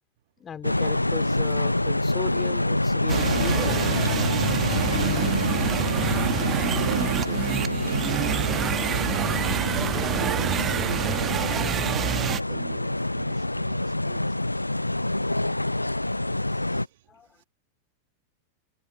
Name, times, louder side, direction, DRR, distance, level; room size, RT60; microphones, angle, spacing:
voice 1, 0.4-4.0 16.7-16.8 17.1-17.3, left 8 dB, 20° left, 2.7 m, -37 dB
sound 1, 0.6-16.9, left 1 dB, 85° left, 0.6 m, -26 dB
sound 2, 3.1-12.4, right 9 dB, 25° right, 1.5 m, -27 dB
voice 2, 5.9-6.5 6.8-9.2 10.1-11.9 12.2-14.4 16.7-17.1 17.3-17.4, right 14 dB, 55° right, 1.7 m, -39 dB
figure-of-eight pair, 90°, 0 cm